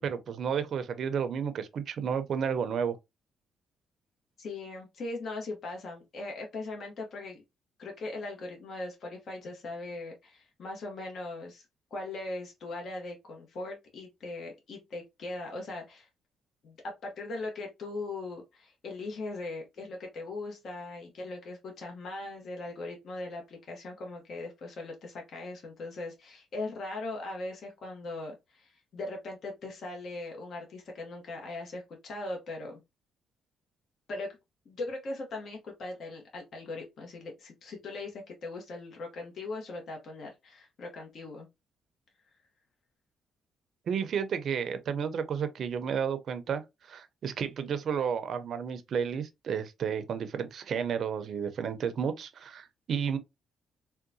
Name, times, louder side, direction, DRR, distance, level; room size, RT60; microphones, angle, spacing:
voice 1, 0.0-3.0 43.9-53.2, right 7 dB, 60° right, 0.5 m, -32 dB
voice 2, 4.4-7.4 7.8-11.6 11.9-16.1 16.6-32.8 34.1-34.4 34.7-41.5, left 2 dB, 60° left, 1.0 m, -39 dB
3.6 x 2.2 x 2.6 m
cardioid pair, 90°, 0 cm